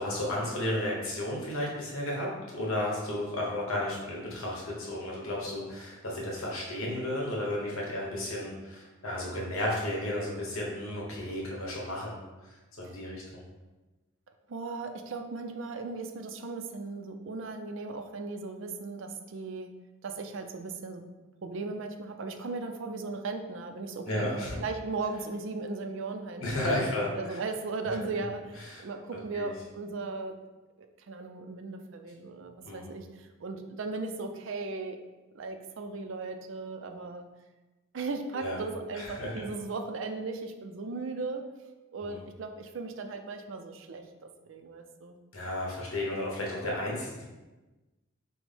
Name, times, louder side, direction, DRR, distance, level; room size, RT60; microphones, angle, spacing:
voice 1, 0.0-12.2 12.4-13.5 24.1-24.6 26.4-27.4 28.7-28.8 29.3-29.5 32.6-32.9 38.4-38.6 38.9-39.5 42.0-42.2 45.3-47.2, left 1 dB, 80° left, -3 dB, 1.2 m, -33 dB
voice 2, 14.5-19.7 20.0-21.0 21.4-30.3 30.8-35.0 35.3-37.3 37.9-41.4 41.9-45.2, right 3 dB, 60° right, 6 dB, 0.4 m, -37 dB
6.0 x 2.1 x 3.4 m, 1.1 s
head